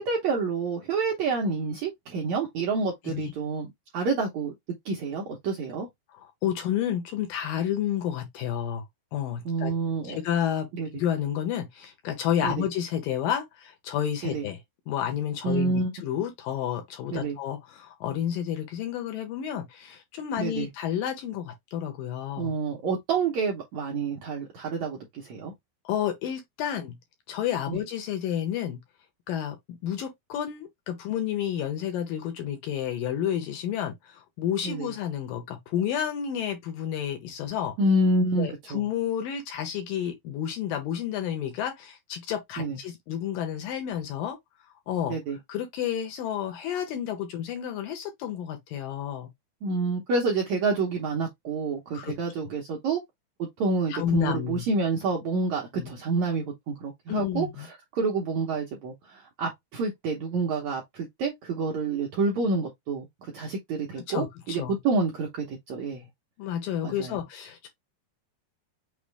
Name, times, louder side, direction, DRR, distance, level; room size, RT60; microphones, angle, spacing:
voice 1, 0.0-3.7 3.9-4.5 4.9-5.9 9.5-10.2 10.8-10.9 12.4-12.6 14.3-14.4 15.4-15.9 17.1-17.4 20.4-20.7 22.4-25.5 27.7-27.8 34.6-34.9 37.8-38.8 42.6-42.8 45.1-45.4 49.6-53.0 53.4-57.5 57.9-63.1 63.3-66.0 66.8-67.2, right 3 dB, 70° right, 1.7 m, -28 dB
voice 2, 6.1-8.8 9.1-9.7 10.0-14.6 14.9-22.5 25.9-27.0 27.3-28.8 29.3-37.7 38.4-44.4 44.9-45.2 45.5-49.3 51.9-52.2 53.9-54.7 55.8-55.9 57.1-57.7 64.0-64.8 66.4-67.7, left 10 dB, 75° left, 2.3 m, -30 dB
6.2 x 2.4 x 3.4 m
omnidirectional pair, 4.5 m